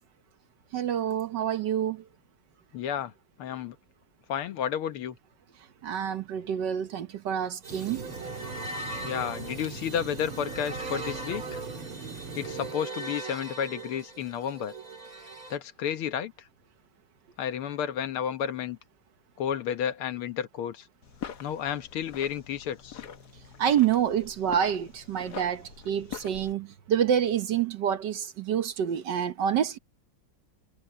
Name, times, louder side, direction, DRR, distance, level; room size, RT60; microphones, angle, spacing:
voice 1, 0.7-2.0 5.8-8.0 23.6-29.8, right 9 dB, 60° right, 1.4 m, -27 dB
voice 2, 2.7-3.1 3.4-3.8 4.3-5.2 9.0-11.6 12.4-14.7 15.5-16.3 17.4-18.8 19.4-20.9 21.4-23.0, left 9 dB, 80° left, 2.0 m, -31 dB
sound 1, 7.6-15.6, right 2 dB, 40° right, 3.2 m, -39 dB
sound 2, 7.7-12.7, right 4 dB, 80° right, 3.1 m, -41 dB
sound 3, 21.0-26.5, left 9 dB, 55° left, 1.5 m, -44 dB
omnidirectional pair, 2.3 m